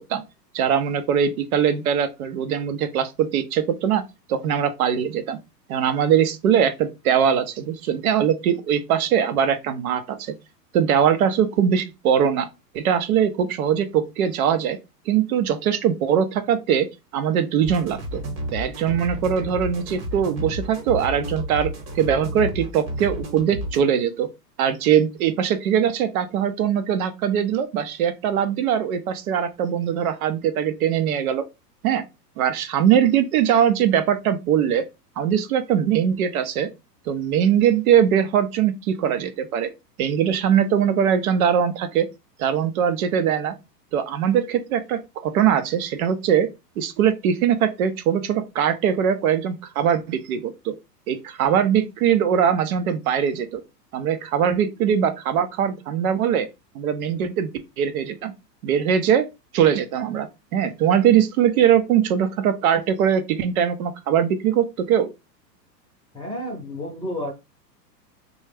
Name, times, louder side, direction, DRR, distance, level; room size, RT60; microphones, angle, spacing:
voice 1, 0.5-4.0 4.3-5.4 5.7-10.3 10.7-12.5 12.7-14.8 15.1-16.9 17.1-18.2 18.5-21.7 21.9-24.3 24.6-31.4 31.8-32.0 32.4-34.8 35.2-36.7 37.1-39.7 40.0-42.1 42.4-43.5 43.9-46.5 46.8-50.7 51.1-53.6 53.9-56.5 56.7-57.5 57.8-58.3 58.6-59.2 59.5-65.1, right 8 dB, 60° right, 0.7 m, -21 dB
sound 1, 17.6-23.8, equal, 35° right, 1.1 m, -31 dB
voice 2, 66.1-67.3, left 1 dB, 10° left, 0.7 m, -31 dB
3.3 x 2.3 x 3.2 m
hypercardioid pair, 120°, 49 cm